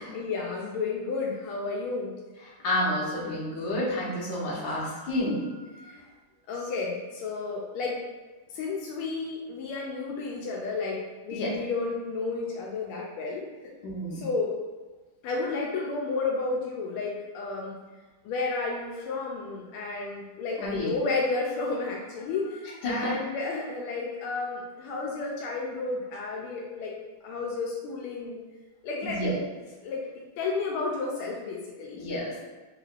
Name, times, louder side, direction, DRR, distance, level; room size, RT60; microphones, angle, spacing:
voice 1, 0.0-2.1 4.7-4.9 5.7-6.0 6.5-8.0 8.5-13.4 14.1-14.5 15.2-17.8 18.2-26.9 27.2-28.4 28.8-29.4 29.8-32.1, left 3 dB, 85° left, -2 dB, 1.5 m, -32 dB
voice 2, 2.4-5.5 11.3-11.6 13.8-14.3 20.6-21.0 22.8-23.1 29.0-29.4 31.9-32.4, left 1 dB, 65° left, -5 dB, 1.6 m, -30 dB
3.6 x 3.2 x 2.4 m, 1.3 s
omnidirectional pair, 2.3 m